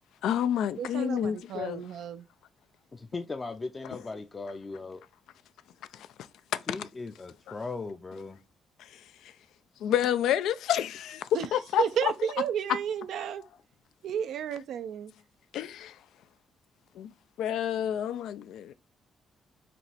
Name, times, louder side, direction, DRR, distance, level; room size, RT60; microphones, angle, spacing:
voice 1, 0.2-1.8 9.8-11.2 11.5-12.1 15.5-15.9 17.0-17.1 17.4-18.7, left 10 dB, 80° left, 0.4 m, -29 dB
voice 2, 0.8-2.2 11.3-11.5 11.8-13.4 14.0-15.1, right 8 dB, 75° right, 0.4 m, -32 dB
voice 3, 2.9-5.0 6.7-8.4, left 3 dB, 25° left, 0.5 m, -38 dB
5.0 x 2.9 x 3.3 m
cardioid pair, 90°, 0 cm